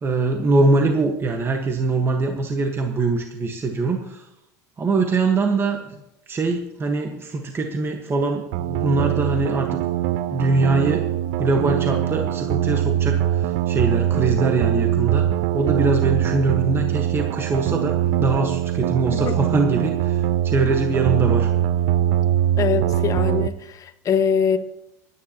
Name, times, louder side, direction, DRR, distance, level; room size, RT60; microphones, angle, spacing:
voice 1, 0.0-4.3 4.8-6.0 6.3-9.8 10.3-11.1 11.4-21.5, right 3 dB, 25° right, 3 dB, 1.4 m, -22 dB
sound 1, 8.5-23.5, right 12 dB, 65° right, 0.6 m, -22 dB
voice 2, 22.6-24.6, left 7 dB, 40° left, 7 dB, 1.5 m, -23 dB
25.5 x 9.8 x 3.0 m, 0.84 s
hypercardioid pair, 90°, 9 cm